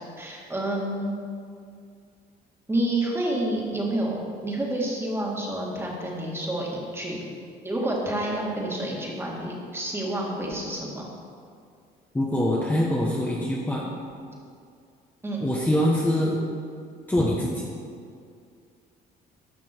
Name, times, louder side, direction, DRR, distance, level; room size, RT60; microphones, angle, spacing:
voice 1, 0.2-1.1 2.7-7.3 7.6-11.1 15.2-15.5, right 1 dB, 15° right, -3 dB, 2.0 m, -29 dB
voice 2, 12.1-13.9 15.4-16.4 17.1-17.5, left 1 dB, 10° left, -4 dB, 1.1 m, -24 dB
12.0 x 6.0 x 4.6 m, 2.3 s
cardioid pair, 110°, 17 cm